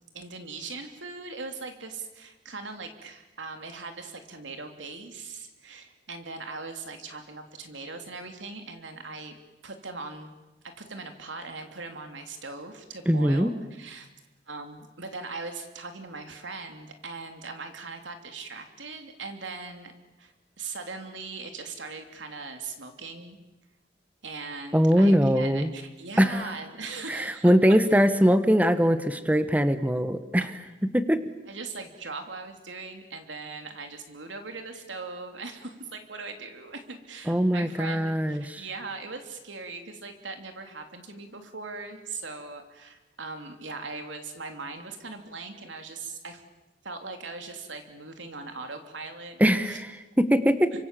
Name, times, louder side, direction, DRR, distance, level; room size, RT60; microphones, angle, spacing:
voice 1, 0.1-9.4 9.6-10.3 10.6-14.1 14.5-19.9 20.2-23.4 24.2-27.5 31.5-46.4 46.8-49.4 49.7-49.8, right 3 dB, 90° right, 6 dB, 3.0 m, -40 dB
voice 2, 13.1-13.5 24.7-25.7 26.2-26.5 27.1-30.4 30.9-31.2 37.3-38.6 49.4-50.7, equal, 10° right, 11 dB, 1.1 m, -22 dB
29.5 x 25.0 x 7.6 m, 1.1 s
head